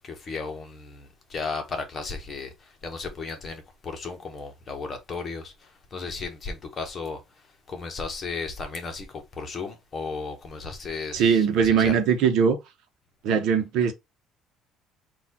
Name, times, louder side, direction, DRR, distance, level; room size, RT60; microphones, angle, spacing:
voice 1, 0.0-2.5 2.8-5.5 5.9-7.2 7.7-11.3 11.8-12.0, left 4 dB, 30° left, 1.1 m, -34 dB
voice 2, 11.1-12.6 13.2-13.9, right 7 dB, 65° right, 0.9 m, -21 dB
4.2 x 2.5 x 4.2 m
cardioid pair, 155°, 0 cm